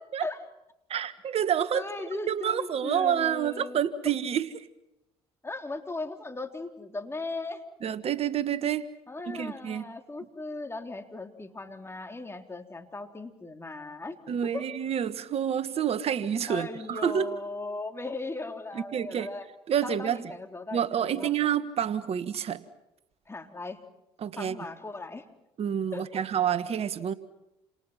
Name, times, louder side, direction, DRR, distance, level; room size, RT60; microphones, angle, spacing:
voice 1, 0.9-4.7 7.8-8.9 9.3-9.8 14.3-17.3 18.7-19.3 19.7-20.3 20.7-22.6 24.2-24.6 25.6-27.1, right 9 dB, 55° right, 12 dB, 1.5 m, -28 dB
voice 2, 1.7-3.8 5.4-7.6 9.1-14.2 14.5-14.7 16.5-19.5 19.8-21.3 23.3-23.8 24.4-25.3 25.9-26.2, left 3 dB, 20° left, 5 dB, 3.8 m, -38 dB
29.0 x 28.0 x 5.9 m, 0.88 s
supercardioid pair, 65°, 13 cm